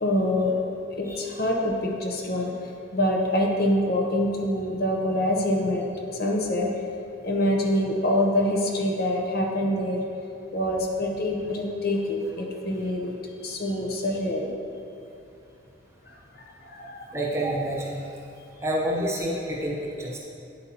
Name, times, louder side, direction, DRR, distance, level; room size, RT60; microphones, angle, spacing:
voice 1, 0.0-0.5 1.0-2.5 2.9-5.8 6.2-6.7 7.2-10.0 10.5-13.1 13.4-14.5 16.1-16.2 16.6-17.0, left 1 dB, 50° left, 1 dB, 0.8 m, -25 dB
voice 2, 17.1-18.0 18.6-20.2, right 1 dB, 15° right, -4 dB, 0.9 m, -28 dB
9.4 x 7.8 x 2.9 m, 2.6 s
head